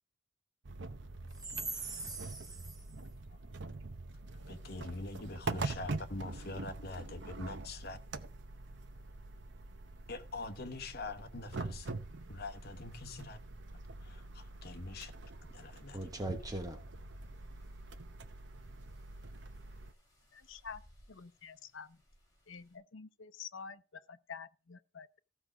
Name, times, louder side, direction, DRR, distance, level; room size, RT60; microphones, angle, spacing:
sound 1, 0.6-19.9, right 3 dB, 60° right, 0.7 m, -44 dB
voice 1, 1.4-2.8 15.9-16.8, right 2 dB, 20° right, 1.0 m, -40 dB
voice 2, 4.5-8.0 10.1-11.9 12.3-13.4 14.0-15.1 15.5-16.1, left 2 dB, 55° left, 1.0 m, -44 dB
sound 2, 8.3-22.8, equal, 20° left, 5.1 m, -66 dB
voice 3, 20.3-20.8 21.1-22.0 22.5-25.2, left 6 dB, 75° left, 0.7 m, -48 dB
14.5 x 5.0 x 6.1 m
head